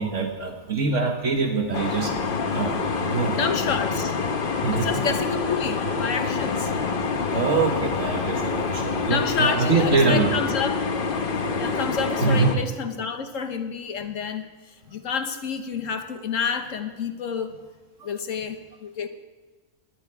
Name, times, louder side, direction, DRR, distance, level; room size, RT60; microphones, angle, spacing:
voice 1, 0.0-2.1 2.5-3.4 4.6-4.9 7.3-10.4 12.2-12.6, right 4 dB, 70° right, 4 dB, 1.6 m, -24 dB
sound 1, 1.7-12.6, left 4 dB, 45° left, 1.1 m, -26 dB
voice 2, 3.3-4.1 4.7-6.8 9.0-10.8 11.6-14.5 14.9-17.6 18.0-19.1, left 6 dB, 80° left, 7 dB, 1.5 m, -29 dB
19.5 x 11.5 x 4.8 m, 1.3 s
omnidirectional pair, 1.3 m